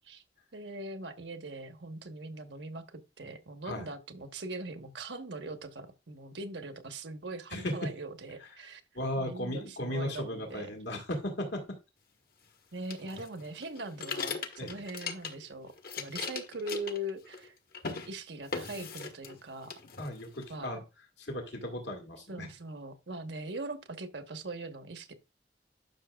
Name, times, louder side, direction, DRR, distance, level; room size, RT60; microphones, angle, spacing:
voice 1, 0.5-8.8 9.2-10.7 12.7-17.5 18.0-19.8 20.5-20.8 22.3-25.1, right 2 dB, 90° right, 1.2 m, -41 dB
voice 2, 7.5-7.9 8.4-8.7 8.9-11.8 14.6-14.8 20.0-20.8 21.2-22.5, left 1 dB, 80° left, 1.9 m, -36 dB
sound 1, 12.9-15.5 15.8-17.5 17.7-18.1 18.5-19.4 19.7-20.5, left 5 dB, 55° left, 1.3 m, -39 dB
12.0 x 6.1 x 2.3 m
head